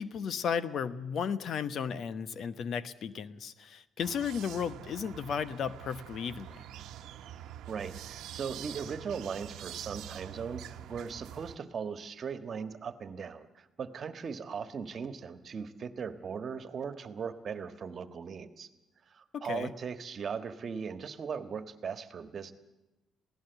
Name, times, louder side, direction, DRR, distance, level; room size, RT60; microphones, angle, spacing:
voice 1, 0.0-6.6 19.3-19.7, left 7 dB, 65° left, 14 dB, 1.0 m, -34 dB
sound 1, 4.0-11.6, right 11 dB, 85° right, 1.0 m, -45 dB
voice 2, 7.7-18.7 19.1-22.5, right 6 dB, 50° right, 10 dB, 1.5 m, -38 dB
26.5 x 16.5 x 8.1 m, 1.0 s
cardioid pair, 90°, 0 cm